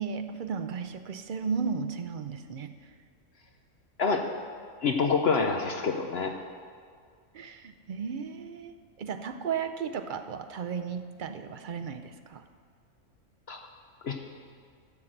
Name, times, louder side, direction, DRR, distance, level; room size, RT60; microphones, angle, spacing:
voice 1, 0.0-2.7 7.3-12.4, right 6 dB, 55° right, 7 dB, 0.5 m, -34 dB
voice 2, 4.8-6.3 13.5-13.6 14.0-14.2, left 5 dB, 60° left, 4 dB, 0.9 m, -26 dB
13.0 x 5.9 x 7.7 m, 2.1 s
omnidirectional pair, 1.3 m